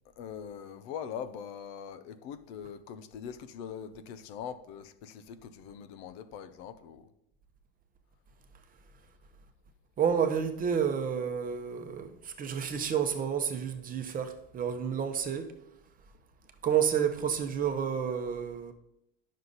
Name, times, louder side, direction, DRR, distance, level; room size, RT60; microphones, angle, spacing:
voice 1, 0.0-7.1, left 8 dB, 70° left, 0.8 m, -42 dB
voice 2, 10.0-15.5 16.6-18.7, right 8 dB, 25° right, 0.8 m, -30 dB
9.6 x 6.4 x 4.0 m
supercardioid pair, 135°, 32 cm